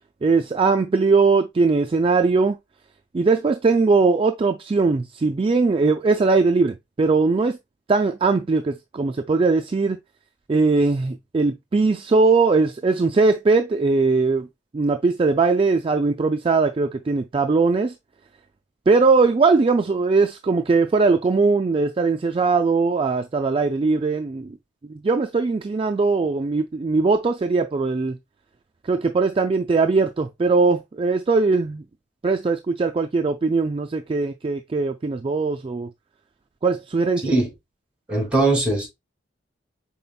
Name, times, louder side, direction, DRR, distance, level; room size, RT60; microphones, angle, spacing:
voice 1, 0.2-2.6 3.1-7.6 7.9-10.0 10.5-14.5 14.7-18.0 18.9-24.6 24.8-28.2 28.8-31.8 32.2-35.9 36.6-37.3, right 4 dB, 30° right, 0.3 m, -20 dB
voice 2, 38.1-38.9, right 2 dB, 5° right, 2.7 m, -20 dB
5.4 x 4.3 x 2.3 m
head